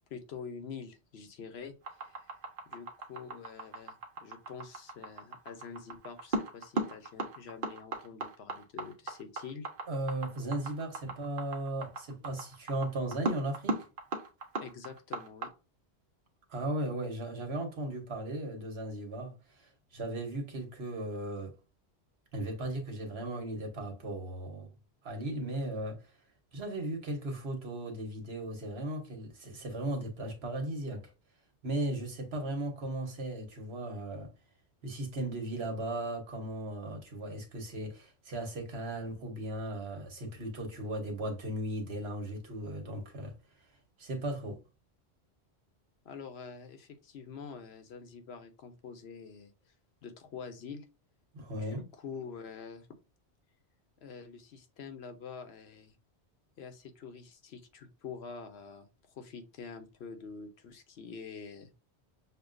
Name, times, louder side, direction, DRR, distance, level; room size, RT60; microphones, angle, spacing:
voice 1, 0.1-2.3 2.7-9.7 11.0-11.1 14.6-15.5 46.0-49.7 50.0-50.9 51.5-52.9 54.0-55.9 56.6-58.9 59.1-61.8, left 5 dB, 75° left, 1.0 m, -46 dB
sound 1, 1.8-15.5, right 2 dB, 55° right, 1.1 m, -36 dB
voice 2, 9.9-13.8 16.5-19.3 19.6-21.5 22.3-24.7 25.0-26.0 26.5-31.1 31.6-34.3 34.8-43.3 44.0-44.6 51.3-51.9, right 1 dB, 70° right, 1.4 m, -36 dB
6.6 x 2.2 x 2.5 m
omnidirectional pair, 1.1 m